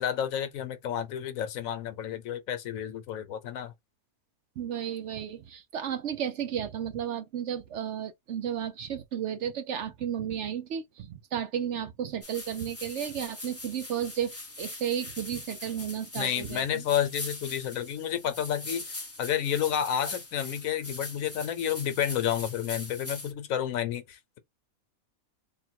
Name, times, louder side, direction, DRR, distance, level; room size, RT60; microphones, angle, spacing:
voice 1, 0.0-3.7 16.2-24.4, left 10 dB, 75° left, 1.1 m, -30 dB
voice 2, 4.6-16.8, right 9 dB, 65° right, 0.9 m, -33 dB
sound 1, 12.2-23.3, left 2 dB, 15° left, 0.7 m, -42 dB
3.7 x 2.2 x 4.4 m
omnidirectional pair, 1.5 m